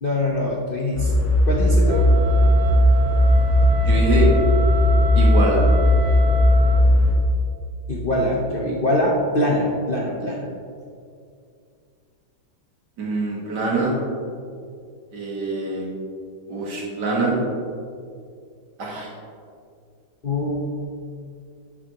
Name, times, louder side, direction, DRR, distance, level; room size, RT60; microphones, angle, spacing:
voice 1, 0.0-1.1 1.4-2.0 7.9-10.5 20.2-20.6, left 1 dB, 75° left, -3 dB, 0.5 m, -23 dB
sound 1, 0.9-7.1, left 1 dB, 45° left, 3.0 m, -17 dB
Wind instrument woodwind instrument, 1.8-6.9, right 4 dB, 80° right, 1.5 m, -30 dB
voice 2, 3.9-4.3 5.1-5.6 13.0-14.0 15.1-15.9 16.5-17.3 18.8-19.1, right 3 dB, 55° right, -4 dB, 2.3 m, -24 dB
11.5 x 8.0 x 2.9 m, 2.3 s
omnidirectional pair, 2.3 m